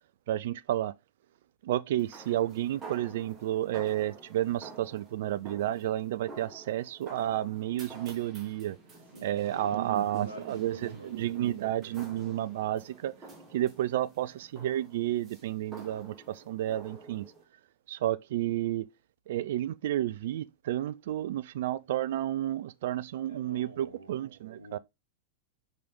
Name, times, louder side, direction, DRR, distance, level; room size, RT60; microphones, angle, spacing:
voice 1, 0.3-0.9 1.6-8.8 9.2-13.2 13.5-17.3 17.9-18.9 19.3-24.8, right 13 dB, 55° right, 0.4 m, -31 dB
sound 1, 2.0-17.4, right 3 dB, 20° right, 2.6 m, -50 dB
voice 2, 9.1-11.5 23.3-24.2 24.5-24.8, right 1 dB, 80° right, 0.9 m, -48 dB
5.4 x 5.1 x 3.8 m
figure-of-eight pair, 90°, 0 cm